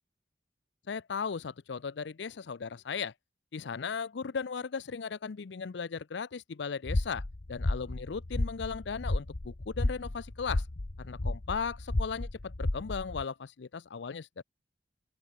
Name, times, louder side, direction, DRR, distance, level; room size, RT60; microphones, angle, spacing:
voice 1, 0.9-3.1 3.5-7.2 7.5-10.6 11.0-14.4, left 5 dB, 75° left, 0.5 m, -37 dB
sound 1, 6.8-13.2, left 2 dB, 60° left, 1.1 m, -33 dB
open air
head